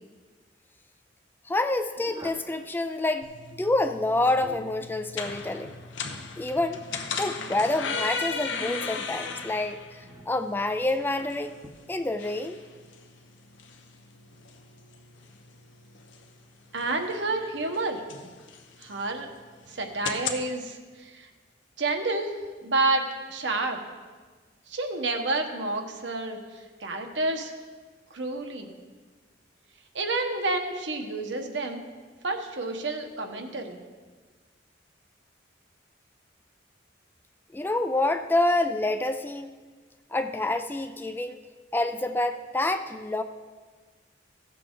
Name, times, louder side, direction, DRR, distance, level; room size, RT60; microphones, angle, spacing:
voice 1, 1.5-3.3 3.6-5.7 6.4-6.8 7.2-11.6 11.9-12.6 37.5-39.5 40.1-41.4 41.7-43.2, left 2 dB, 10° left, 8 dB, 0.3 m, -27 dB
sound 1, 2.0-2.5 4.0-4.8 6.6-7.5 8.4-9.1 10.0-10.4 11.6-11.7, right 1 dB, 20° right, 0.7 m, -45 dB
sound 2, 3.2-20.4, left 5 dB, 80° left, 0.9 m, -38 dB
voice 2, 16.7-18.0 18.8-19.3 19.7-21.3 21.8-22.3 22.6-23.8 24.7-27.5 28.1-28.7 29.9-31.8 32.2-33.8, right 2 dB, 70° right, 4 dB, 1.2 m, -29 dB
16.0 x 6.7 x 3.8 m, 1.4 s
head